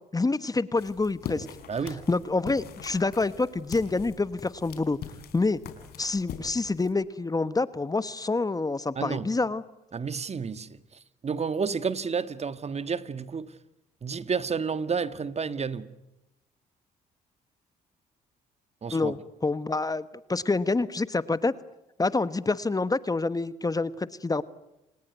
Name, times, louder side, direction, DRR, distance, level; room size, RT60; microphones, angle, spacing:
voice 1, 0.1-1.5 2.1-5.0 5.3-5.6 6.0-9.6 18.9-19.2 19.4-20.0 20.3-21.5 22.0-24.4, left 3 dB, 20° left, 1.3 m, -27 dB
sound 1, 0.8-6.9, left 8 dB, 75° left, 4.4 m, -42 dB
voice 2, 1.7-2.0 8.9-9.3 9.9-13.5 14.0-15.9 18.8-19.1, right 5 dB, 40° right, 1.6 m, -31 dB
30.0 x 19.5 x 9.4 m
supercardioid pair, 60°, 17 cm